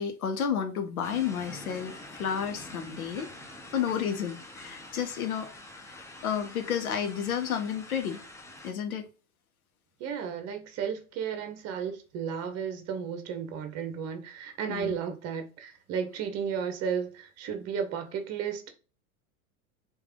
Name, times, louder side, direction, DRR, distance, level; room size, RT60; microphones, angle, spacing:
voice 1, 0.0-3.3 3.7-5.5 5.8-8.2 8.6-9.1 14.7-14.9, left 8 dB, 75° left, 0.9 m, -31 dB
sound 1, 1.0-8.7, left 1 dB, 5° left, 0.6 m, -46 dB
voice 2, 10.0-18.6, right 7 dB, 35° right, 0.8 m, -33 dB
3.3 x 2.6 x 3.5 m
figure-of-eight pair, 85°, 43 cm